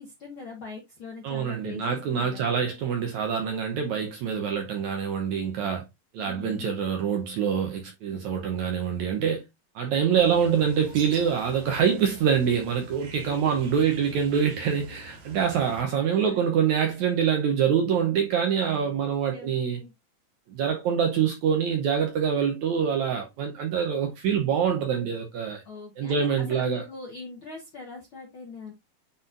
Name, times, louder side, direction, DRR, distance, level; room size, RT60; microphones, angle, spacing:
voice 1, 0.0-2.6 6.2-6.7 13.2-14.0 16.1-16.3 19.0-19.9 25.6-26.2 26.5-28.7, left 4 dB, 65° left, 1.3 m, -42 dB
voice 2, 1.2-5.8 6.1-9.4 9.7-19.8 20.5-25.6 26.0-26.9, right 7 dB, 70° right, 1.8 m, -25 dB
Bird, 10.2-15.8, right 2 dB, 85° right, 3.9 m, -46 dB
9.6 x 4.2 x 2.5 m
omnidirectional pair, 4.2 m